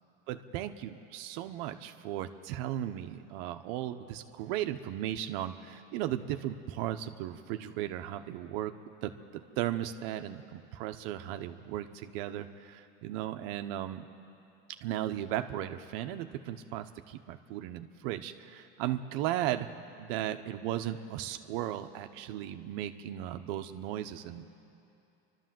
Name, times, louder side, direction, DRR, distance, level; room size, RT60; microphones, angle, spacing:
voice 1, 0.3-8.7 9.0-14.1 14.7-19.7 20.0-24.5, right 12 dB, 65° right, 7 dB, 1.0 m, -36 dB
29.5 x 12.5 x 7.7 m, 2.8 s
supercardioid pair, 125°, 32 cm